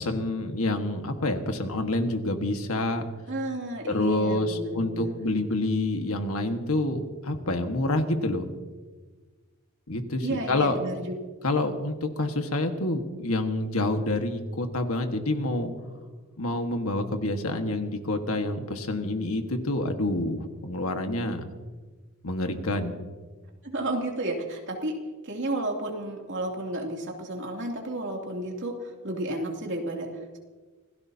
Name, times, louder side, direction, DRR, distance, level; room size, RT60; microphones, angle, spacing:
voice 1, 0.0-3.0 3.9-8.5 9.9-10.8 11.4-15.7 16.4-21.4 22.2-23.0, left 2 dB, 75° left, 5 dB, 1.6 m, -27 dB
voice 2, 3.3-5.2 10.2-11.1 23.6-25.0 25.2-30.1, right 1 dB, 55° right, 0 dB, 2.8 m, -32 dB
27.0 x 17.0 x 2.9 m, 1.4 s
head